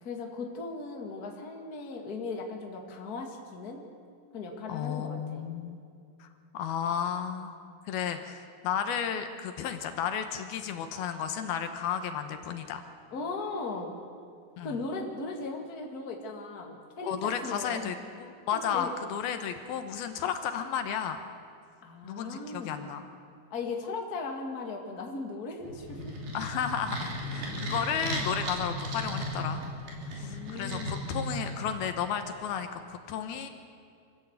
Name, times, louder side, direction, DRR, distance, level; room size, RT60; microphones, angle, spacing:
voice 1, 0.0-3.8 4.3-5.5 13.1-13.9 14.6-17.9 18.5-18.9 21.8-22.8 23.5-26.2 30.2-31.2, left 3 dB, 30° left, 1 dB, 2.0 m, -38 dB
voice 2, 4.7-5.8 6.2-6.3 6.5-7.6 7.9-12.8 14.6-14.8 17.0-21.2 22.0-23.1 26.3-29.6 30.1-33.5, left 8 dB, 80° left, 7 dB, 2.9 m, -33 dB
sound 1, 25.6-31.9, equal, 75° right, 5.0 m, -36 dB
25.5 x 16.0 x 8.2 m, 2.3 s
omnidirectional pair, 4.6 m